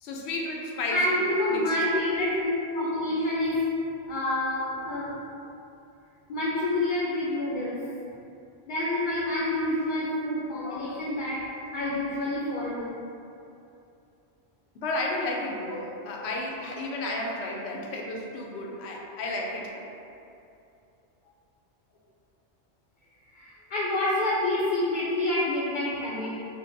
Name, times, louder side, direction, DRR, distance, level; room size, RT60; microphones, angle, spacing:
voice 1, 0.0-1.0 1.5-1.6 10.6-10.9 14.7-19.7, left 2 dB, 90° left, -1 dB, 0.9 m, -32 dB
voice 2, 0.9-3.6 4.1-5.2 6.3-7.8 8.7-12.9 23.3-26.5, left 1 dB, 55° left, -7 dB, 0.6 m, -28 dB
5.1 x 2.2 x 2.6 m, 2.7 s
omnidirectional pair, 1.1 m